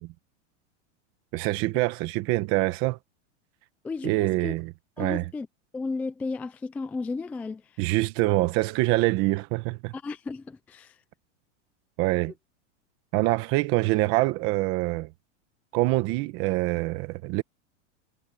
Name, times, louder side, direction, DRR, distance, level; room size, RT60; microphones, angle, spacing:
voice 1, 1.3-3.0 4.0-4.7 5.0-5.2 7.8-9.9 12.0-12.3 13.1-15.1 15.7-17.4, right 20 dB, 35° right, 1.1 m, -25 dB
voice 2, 3.8-4.5 5.0-5.5 5.7-7.6 9.9-11.0, left 3 dB, 5° left, 0.4 m, -34 dB
supercardioid pair, 160°, 37 cm